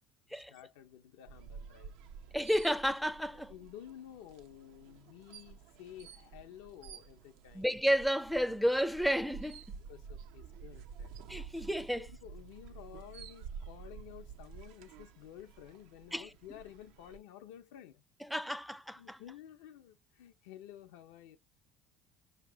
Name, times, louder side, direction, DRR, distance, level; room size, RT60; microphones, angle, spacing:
voice 1, 0.3-1.9 3.3-7.7 9.9-11.2 11.9-18.0 19.0-21.4, left 11 dB, 85° left, 0.7 m, -52 dB
sound 1, 1.3-17.2, right 6 dB, 80° right, 0.7 m, -50 dB
voice 2, 2.3-3.5 7.5-9.6 11.3-12.1 16.1-16.3 18.2-19.2, equal, ahead, 0.4 m, -31 dB
5.3 x 3.0 x 3.4 m
supercardioid pair, 100°, 0 cm